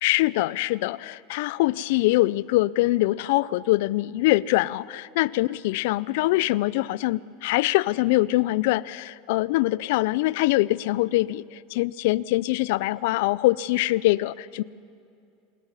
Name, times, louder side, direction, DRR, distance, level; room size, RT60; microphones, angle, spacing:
voice 1, 0.0-14.6, left 18 dB, 70° left, 22 dB, 0.4 m, -23 dB
27.0 x 9.8 x 9.7 m, 2.6 s
supercardioid pair, 130°, 0 cm